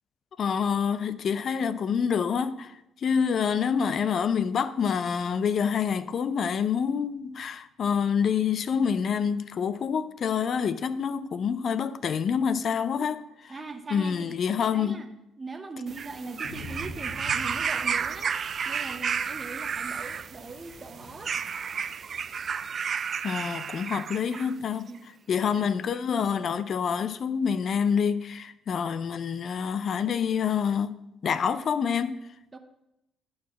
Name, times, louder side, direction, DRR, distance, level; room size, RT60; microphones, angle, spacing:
voice 1, 0.4-2.8 3.0-13.5 13.9-15.0 23.2-24.9 25.3-30.9 31.2-32.2, left 7 dB, 55° left, 0.4 m, -27 dB
voice 2, 13.5-14.3 14.7-15.1 15.4-21.4 24.9-25.0 32.5-32.6, right 3 dB, 30° right, 0.8 m, -40 dB
sound 1, 15.9-24.5 25.4-25.5, right 6 dB, 50° right, 0.3 m, -32 dB
Thunder / Rain, 16.4-21.4, left 1 dB, 85° left, 1.4 m, -45 dB
9.2 x 4.8 x 6.1 m
supercardioid pair, 65°, 0 cm